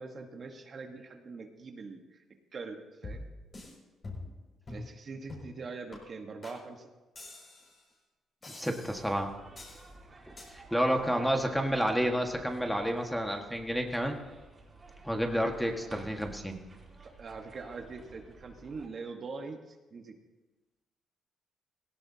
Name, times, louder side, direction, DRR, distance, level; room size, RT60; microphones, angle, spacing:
voice 1, 0.0-2.2 2.5-3.3 4.7-6.9 11.2-11.3 17.0-20.1, right 4 dB, 45° right, 4 dB, 1.3 m, -43 dB
sound 1, 3.0-3.7 4.0-4.4 4.7-4.9 5.3-5.6 5.9-6.0 6.4-6.6 7.2-7.8 8.4-9.1 9.6-9.9 10.4-10.5, left 2 dB, 40° left, 6.0 m, -44 dB
voice 2, 8.5-9.3 10.3-14.2 15.0-16.6, equal, ahead, 3 dB, 1.6 m, -30 dB
sound 2, 8.8-18.9, right 2 dB, 25° right, 4.3 m, -53 dB
17.5 x 17.0 x 2.8 m, 1.2 s
cardioid pair, 90°, 0 cm